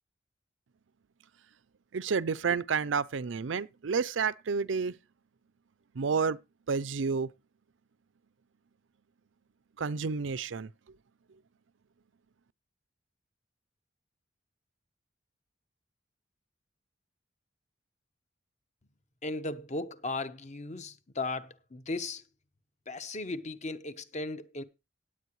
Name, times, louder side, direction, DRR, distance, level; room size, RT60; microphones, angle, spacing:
voice 1, 1.9-4.9 6.0-6.4 6.7-7.3 9.8-10.7, right 5 dB, 80° right, 0.5 m, -30 dB
voice 2, 19.2-22.2 22.9-24.6, left 2 dB, 40° left, 1.0 m, -36 dB
17.5 x 8.7 x 3.1 m
head